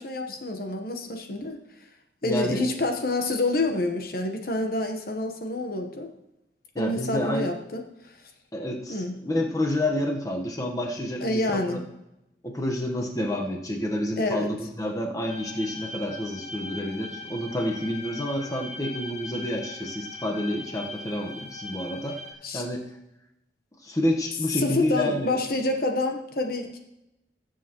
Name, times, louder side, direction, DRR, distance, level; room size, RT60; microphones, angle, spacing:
voice 1, 0.0-1.6 2.2-6.1 6.8-8.1 8.9-9.2 11.2-11.8 14.2-14.5 22.4-22.6 24.6-26.8, left 2 dB, 55° left, 5 dB, 1.0 m, -28 dB
voice 2, 2.2-2.6 6.7-7.5 8.5-11.8 12.4-22.2 22.5-22.8 23.8-25.4, left 1 dB, 20° left, 1 dB, 1.1 m, -29 dB
sound 1, 15.3-22.3, left 2 dB, 40° left, 1.9 m, -40 dB
20.0 x 7.5 x 3.0 m, 0.91 s
head